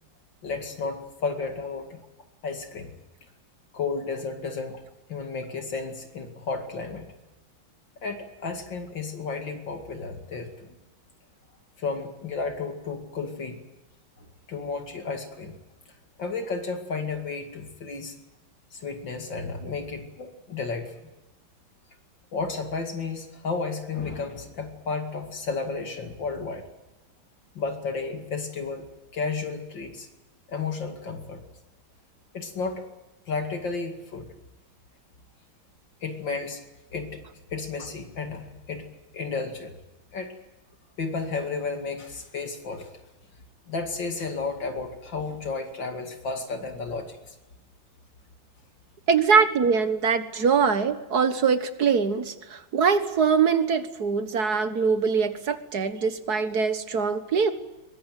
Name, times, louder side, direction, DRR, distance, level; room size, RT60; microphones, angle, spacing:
voice 1, 0.4-2.0 2.4-3.0 3.7-4.8 5.1-7.1 8.0-10.7 11.8-13.6 14.2-15.6 16.2-18.2 18.7-20.9 22.3-26.6 27.5-28.9 29.1-30.1 30.5-31.4 32.3-32.8 33.3-34.3 36.0-36.6 36.9-37.2 37.5-38.9 39.1-39.7 40.1-40.3 41.0-42.9 43.7-47.4, left 4 dB, 65° left, 4 dB, 3.0 m, -32 dB
voice 2, 49.1-57.5, right 5 dB, 55° right, 10 dB, 1.9 m, -23 dB
23.0 x 21.5 x 9.2 m, 0.99 s
omnidirectional pair, 2.2 m